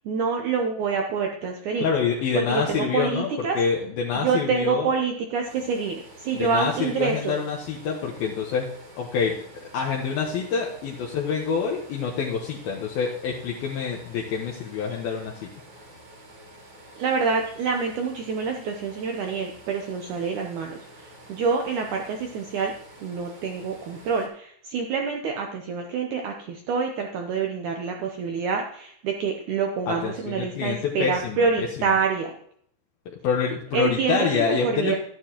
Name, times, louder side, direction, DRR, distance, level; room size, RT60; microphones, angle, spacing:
voice 1, 0.1-1.9 2.4-3.6 4.2-7.4 17.0-22.7 23.0-32.3 33.7-35.0, right 5 dB, 85° right, 3 dB, 1.7 m, -27 dB
voice 2, 1.8-4.9 6.3-8.7 8.9-9.3 9.7-15.5 29.9-31.5 31.8-31.9 33.2-35.0, left 6 dB, 70° left, -1 dB, 2.8 m, -26 dB
sound 1, 5.4-24.3, right 1 dB, 30° right, 2.7 m, -48 dB
12.0 x 11.5 x 3.0 m, 0.63 s
omnidirectional pair, 4.8 m